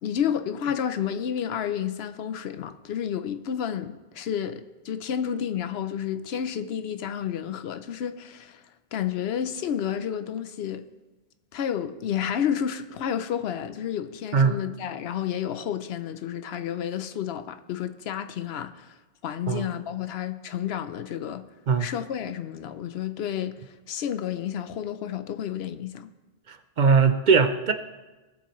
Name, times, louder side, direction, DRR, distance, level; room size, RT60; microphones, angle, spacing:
voice 1, 0.0-8.6 8.9-10.8 11.5-18.9 19.2-21.4 21.8-23.6 23.9-26.1, left 9 dB, 80° left, 0.9 m, -30 dB
voice 2, 26.8-27.7, right 5 dB, 55° right, 0.7 m, -19 dB
17.5 x 7.2 x 3.1 m
omnidirectional pair, 1.0 m